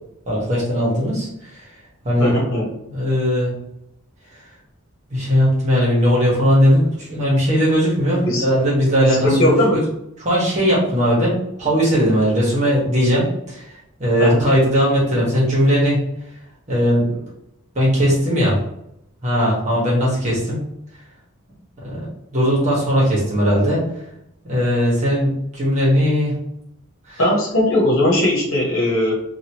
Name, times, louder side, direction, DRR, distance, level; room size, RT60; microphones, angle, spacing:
voice 1, 0.3-1.6 2.0-2.4 2.9-3.5 5.1-9.5 10.2-13.6 14.0-16.0 16.7-17.2 17.7-18.6 19.2-20.6 21.8-22.0 22.3-23.8 24.4-26.3 27.1-27.2, equal, 35° right, -5 dB, 1.2 m, -18 dB
voice 2, 2.2-2.7 8.2-8.4 9.2-9.8 14.2-14.4 27.2-29.2, left 1 dB, 65° left, -3 dB, 1.1 m, -18 dB
2.9 x 2.5 x 2.9 m, 0.81 s
head